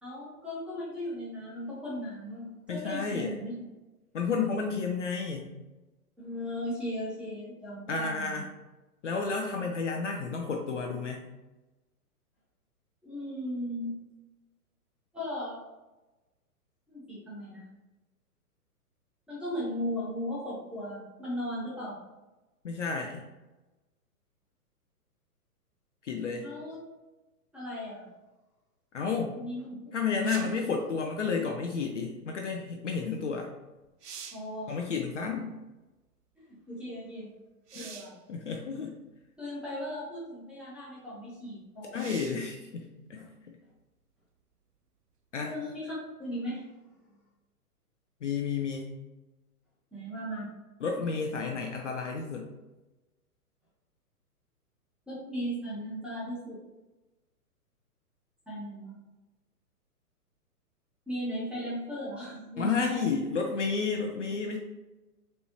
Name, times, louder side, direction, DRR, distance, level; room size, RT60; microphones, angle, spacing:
voice 1, 0.0-3.5 6.2-8.4 13.0-13.9 15.1-15.6 16.9-17.6 19.3-22.0 26.4-26.8 27.5-28.1 29.3-29.9 30.4-30.5 34.3-34.7 36.7-37.3 37.7-38.1 39.4-42.0 45.5-46.6 49.9-50.5 55.1-56.6 58.5-58.9 61.1-63.1, equal, ahead, -9 dB, 1.1 m, -37 dB
voice 2, 2.7-3.3 4.1-5.5 7.9-8.5 9.0-11.2 22.6-23.2 26.0-26.5 28.9-29.4 29.9-33.5 34.7-35.5 37.8-37.9 38.3-38.9 41.9-43.3 45.3-45.5 48.2-48.9 50.8-52.5 62.6-64.6, left 5 dB, 50° left, 2 dB, 0.5 m, -31 dB
sound 1, 30.2-30.7 33.3-33.4 33.8-34.6 37.7-38.2 39.2-39.3 41.9-42.5 46.1-46.2, right 7 dB, 80° right, 0.6 m, -45 dB
4.2 x 3.3 x 2.9 m, 1.1 s
figure-of-eight pair, 115°, 46 cm